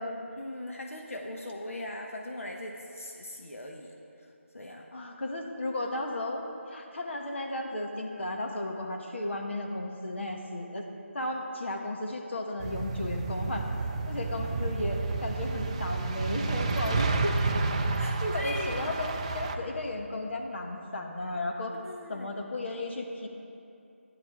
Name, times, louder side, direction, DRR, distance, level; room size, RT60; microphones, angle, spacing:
voice 1, 0.4-3.9 4.5-4.9 16.9-17.3 18.0-18.9 21.8-22.3, left 1 dB, 80° left, 1 dB, 1.2 m, -40 dB
voice 2, 4.9-10.9 11.1-13.6 14.1-17.3 18.2-21.8 22.1-23.3, left 1 dB, 55° left, 1 dB, 1.5 m, -34 dB
sound 1, 12.6-19.6, right 3 dB, 25° right, 0.5 m, -30 dB
15.0 x 10.5 x 3.7 m, 2.7 s
figure-of-eight pair, 165°, 7 cm